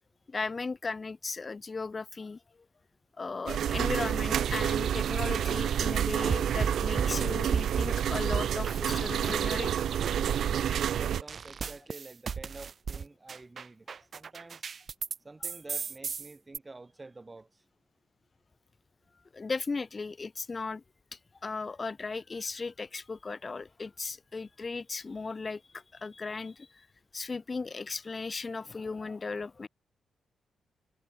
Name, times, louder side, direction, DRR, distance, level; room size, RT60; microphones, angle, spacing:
voice 1, 0.3-2.4 3.2-10.0 10.3-10.4 19.3-20.8 21.1-26.9 27.1-29.7, left 4 dB, 25° left, 3.2 m, -37 dB
sound 1, 3.5-11.2, right 9 dB, 60° right, 0.3 m, -29 dB
sound 2, 6.3-7.9 8.3-9.7 10.0-15.2 15.4-16.6, right 6 dB, 35° right, 0.7 m, -35 dB
voice 2, 10.9-14.6 15.2-17.6, right 3 dB, 15° right, 7.0 m, -49 dB
wide cardioid pair, 180°, 0 cm